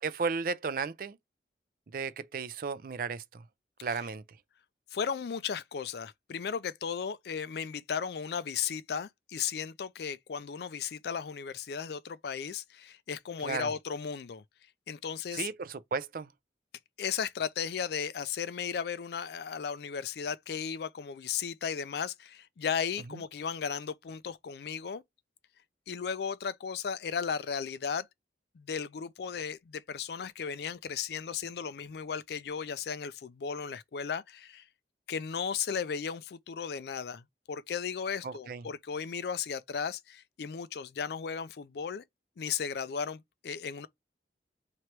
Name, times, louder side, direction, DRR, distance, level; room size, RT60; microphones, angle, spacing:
voice 1, 0.0-1.2 1.9-3.4 3.8-4.2 13.4-13.7 15.3-16.3 23.1-23.2 38.2-38.6, right 5 dB, 50° right, 0.4 m, -34 dB
voice 2, 4.9-14.4 14.9-15.5 17.0-25.0 25.9-28.1 28.6-34.6 35.1-42.0 42.4-43.9, left 7 dB, 60° left, 0.4 m, -35 dB
3.1 x 2.9 x 4.5 m
head